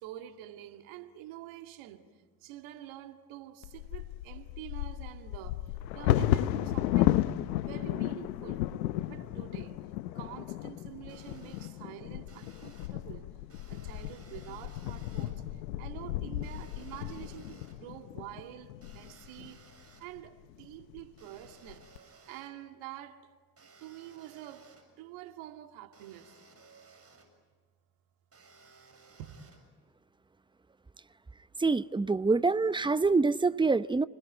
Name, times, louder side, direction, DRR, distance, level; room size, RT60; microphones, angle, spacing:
voice 1, 0.0-2.1 2.4-5.6 5.9-8.6 9.1-9.8 10.2-13.3 13.7-15.4 15.8-19.6 20.0-21.8 22.3-23.2 23.8-24.7 25.0-26.3 29.2-29.3, right 13 dB, 70° right, 2.3 m, -47 dB
Bird vocalization bird call bird song / Wind / Thunder, 3.6-19.5 20.2-20.3 20.6-21.0 21.4-22.0, left 14 dB, 85° left, 0.9 m, -33 dB
sound 1, 11.1-11.7 12.3-12.9 13.5-15.3 16.4-17.7 18.8-20.1 21.2-22.5 23.6-24.8 25.9-27.2 28.3-29.6, right 4 dB, 30° right, 7.5 m, -58 dB
voice 2, 31.6-34.1, right 3 dB, 10° right, 0.7 m, -26 dB
30.0 x 20.5 x 9.3 m
hypercardioid pair, 65°, 49 cm